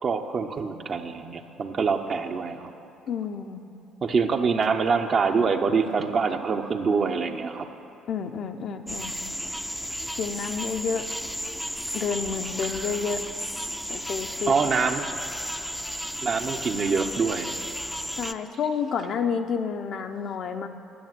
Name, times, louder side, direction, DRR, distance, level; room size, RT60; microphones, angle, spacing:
voice 1, 0.0-2.7 4.0-7.7 14.5-15.1 16.2-17.6, right 5 dB, 45° right, 5 dB, 0.8 m, -25 dB
voice 2, 3.1-3.6 8.1-9.1 10.2-11.1 11.9-13.2 13.9-14.5 18.2-20.7, left 6 dB, 55° left, 6 dB, 0.7 m, -29 dB
sound 1, 8.9-18.3, equal, ahead, 0.5 m, -33 dB
10.5 x 7.2 x 7.8 m, 2.9 s
hypercardioid pair, 50°, 0 cm